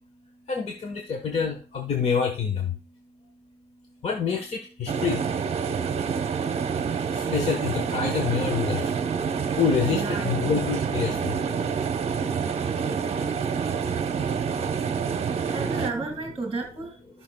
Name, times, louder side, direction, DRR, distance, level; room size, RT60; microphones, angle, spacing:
voice 1, 0.5-2.7 4.0-5.2 7.1-9.0 9.6-11.3, left 6 dB, 40° left, 4 dB, 1.2 m, -27 dB
sound 1, 4.9-15.9, right 6 dB, 40° right, 0.9 m, -27 dB
voice 2, 9.9-10.5 15.4-17.2, right 3 dB, 20° right, 4 dB, 1.9 m, -33 dB
15.0 x 5.9 x 2.3 m, 0.36 s
cardioid pair, 105°, 17 cm